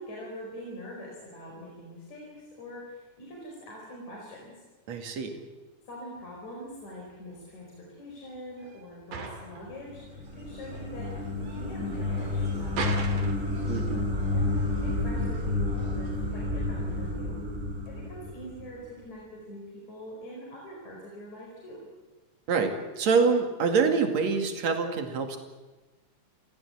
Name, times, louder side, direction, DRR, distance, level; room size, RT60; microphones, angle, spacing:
voice 1, 0.0-4.5 5.8-13.3 14.3-17.4 17.8-21.9, equal, 65° left, -2 dB, 6.1 m, -43 dB
voice 2, 4.9-5.4 13.7-14.0 22.5-25.4, right 5 dB, 60° right, 5 dB, 3.4 m, -26 dB
sound 1, 6.2-18.1, right 4 dB, 90° right, 4.3 m, -42 dB
sound 2, 9.6-18.9, left 2 dB, 20° right, 2.6 m, -30 dB
sound 3, 9.8-17.2, equal, 15° left, 6.3 m, -49 dB
28.5 x 16.0 x 8.6 m, 1.2 s
omnidirectional pair, 3.5 m